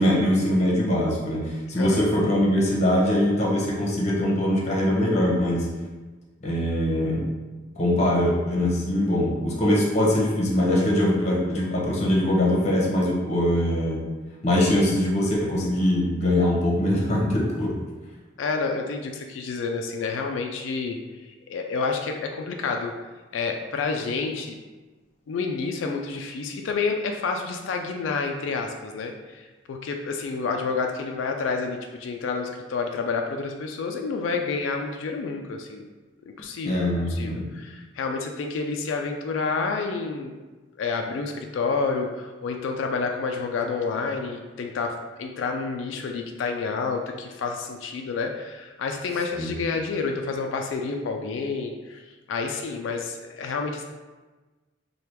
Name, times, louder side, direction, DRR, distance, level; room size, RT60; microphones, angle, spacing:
voice 1, 0.0-5.7 6.4-7.3 7.7-14.0 14.4-17.7 36.6-37.5 49.3-49.5, left 1 dB, 35° left, -3 dB, 0.8 m, -22 dB
voice 2, 1.8-2.1 18.4-23.0 23.3-24.6 25.3-35.8 36.4-40.3 40.8-52.0 52.3-53.8, left 4 dB, 75° left, 3 dB, 0.3 m, -29 dB
3.3 x 2.3 x 4.4 m, 1.2 s
head